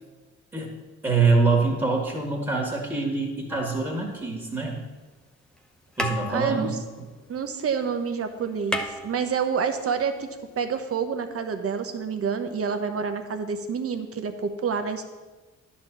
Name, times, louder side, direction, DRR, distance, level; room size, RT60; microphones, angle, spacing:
voice 1, 1.0-4.8 6.0-7.1, right 4 dB, 15° right, -1 dB, 1.9 m, -25 dB
sound 1, 3.5-4.7 5.6-5.7 5.9-7.8 8.1-8.2 8.4-9.8 11.0-11.1, left 1 dB, 5° left, 0.7 m, -34 dB
voice 2, 6.3-6.7 7.3-10.3 10.6-15.0, right 6 dB, 50° right, 8 dB, 1.0 m, -28 dB
10.5 x 4.3 x 7.3 m, 1.3 s
cardioid pair, 90°, 30 cm